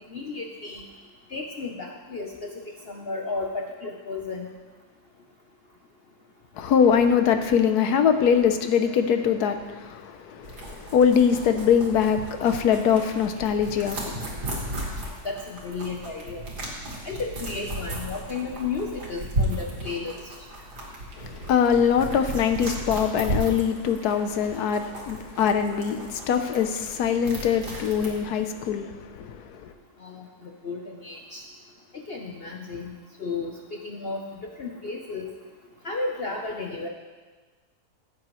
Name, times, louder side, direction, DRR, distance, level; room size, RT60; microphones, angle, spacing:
voice 1, 0.1-0.8 1.3-4.5 15.2-16.5 17.0-20.2 30.0-31.4 32.1-32.9 33.2-35.3 35.8-36.9, left 4 dB, 50° left, 1 dB, 0.8 m, -33 dB
voice 2, 6.6-14.8 21.2-29.7, left 7 dB, 75° left, 8 dB, 1.3 m, -23 dB
sound 1, 10.4-28.2, right 1 dB, 80° right, 2.5 m, -35 dB
15.5 x 8.6 x 3.1 m, 1.3 s
omnidirectional pair, 1.7 m